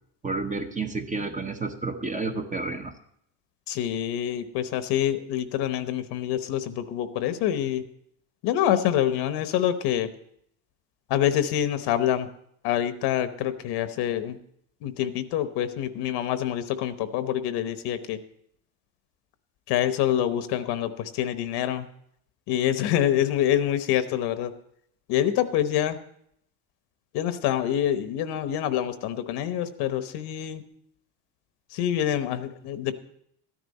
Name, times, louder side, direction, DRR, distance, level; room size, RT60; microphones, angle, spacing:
voice 1, 0.2-2.9, right 3 dB, 20° right, 6 dB, 0.9 m, -30 dB
voice 2, 3.7-7.8 8.4-10.1 11.1-12.3 12.6-14.4 14.8-18.2 19.7-21.9 22.5-24.5 25.1-26.0 27.1-30.6 31.7-32.9, left 11 dB, 75° left, 10 dB, 1.1 m, -26 dB
13.0 x 10.5 x 4.1 m, 0.70 s
cardioid pair, 130°, 41 cm